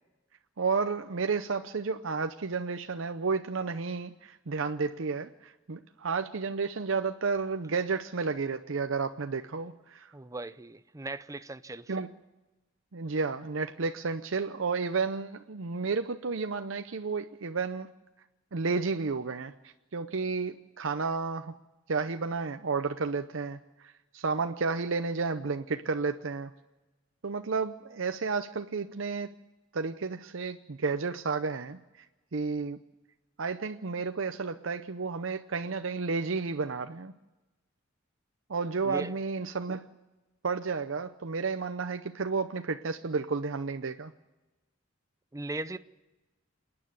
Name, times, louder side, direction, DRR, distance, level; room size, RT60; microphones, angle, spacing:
voice 1, 0.6-10.1 11.9-12.1 12.9-17.9 18.5-21.5 21.9-26.5 27.2-29.3 29.7-31.8 32.3-32.8 33.4-37.1 38.5-39.9 40.4-44.1, right 4 dB, 70° right, 0.7 m, -32 dB
voice 2, 10.1-11.9 38.8-39.1 45.3-45.8, right 2 dB, 15° right, 0.6 m, -38 dB
28.0 x 9.8 x 9.6 m
head